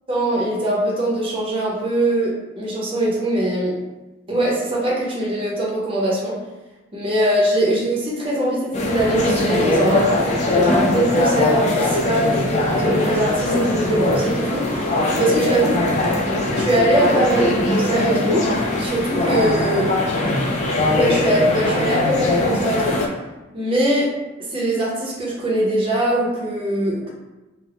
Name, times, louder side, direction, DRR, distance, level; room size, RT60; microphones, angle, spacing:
voice 1, 0.1-3.7 4.3-6.4 6.9-10.1 10.5-15.7 16.6-18.5 18.8-19.9 20.9-23.0 23.5-24.1 24.5-27.1, right 1 dB, 30° right, -5 dB, 0.6 m, -21 dB
sound 1, 8.7-23.1, left 2 dB, 35° left, 0.3 m, -20 dB
2.4 x 2.0 x 3.4 m, 1.1 s
head